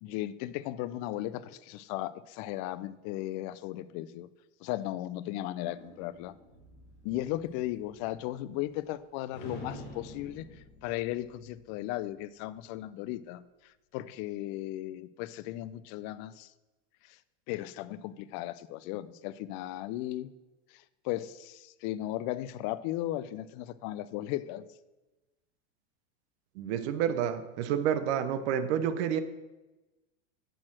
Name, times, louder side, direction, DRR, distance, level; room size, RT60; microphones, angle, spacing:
voice 1, 0.0-4.3 4.6-6.3 7.0-16.5 17.0-17.2 17.5-20.3 20.7-24.6, left 14 dB, 50° left, 17 dB, 0.5 m, -36 dB
sound 1, 5.6-9.0 9.3-12.0, left 1 dB, 80° left, 3.3 m, -49 dB
voice 2, 26.6-29.2, right 9 dB, 65° right, 11 dB, 0.7 m, -29 dB
9.1 x 4.3 x 6.1 m, 1.1 s
hypercardioid pair, 100°, 36 cm